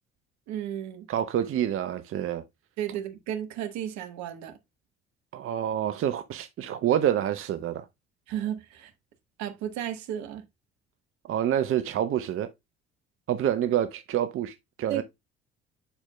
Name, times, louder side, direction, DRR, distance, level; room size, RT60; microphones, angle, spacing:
voice 1, 0.5-1.1 2.8-4.5 8.3-8.9 9.4-10.4 14.9-15.0, right 10 dB, 65° right, 1.2 m, -33 dB
voice 2, 1.1-2.4 5.3-7.9 11.3-12.5 13.3-15.0, right 10 dB, 45° right, 0.6 m, -27 dB
11.0 x 4.4 x 2.2 m
hypercardioid pair, 55°, 30 cm